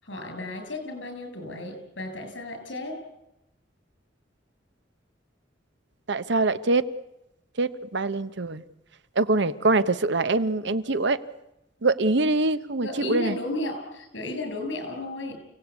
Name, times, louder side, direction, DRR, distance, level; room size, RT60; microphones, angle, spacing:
voice 1, 0.0-3.0 12.8-15.4, left 1 dB, 75° left, 6 dB, 7.1 m, -34 dB
voice 2, 6.1-6.8 7.6-8.6 9.2-11.2 11.8-13.4, right 2 dB, 65° right, 14 dB, 1.0 m, -24 dB
29.0 x 18.0 x 8.4 m, 0.90 s
head